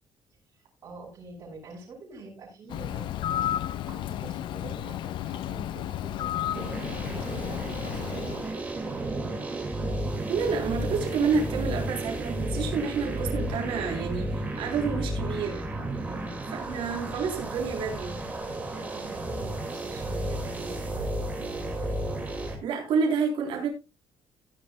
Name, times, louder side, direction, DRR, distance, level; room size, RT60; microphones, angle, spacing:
voice 1, 0.8-6.9 7.4-9.8 16.0-16.6 18.4-22.3, right 3 dB, 35° right, 5.5 m, -46 dB
Bird, 2.7-8.5, left 12 dB, 55° left, 0.5 m, -32 dB
sound 1, 6.5-22.5, right 1 dB, 15° right, 2.4 m, -33 dB
voice 2, 10.3-15.6 16.5-18.2 22.6-23.7, right 5 dB, 60° right, 3.8 m, -29 dB
15.5 x 10.5 x 2.3 m
cardioid pair, 180°, 10 cm